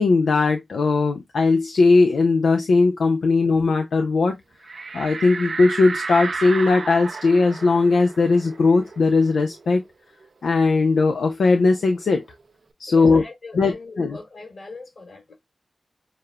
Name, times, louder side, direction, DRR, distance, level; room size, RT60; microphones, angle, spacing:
voice 1, 0.0-4.3 4.9-9.8 10.4-12.2 12.8-13.2 13.6-14.2, left 3 dB, 90° left, 0.4 m, -18 dB
sound 1, 4.7-9.9 10.2-10.3 10.6-12.3, right 4 dB, 70° right, 0.4 m, -33 dB
voice 2, 12.9-15.4, left 3 dB, 65° left, 3.1 m, -40 dB
6.6 x 2.2 x 2.2 m
cardioid pair, 45°, 0 cm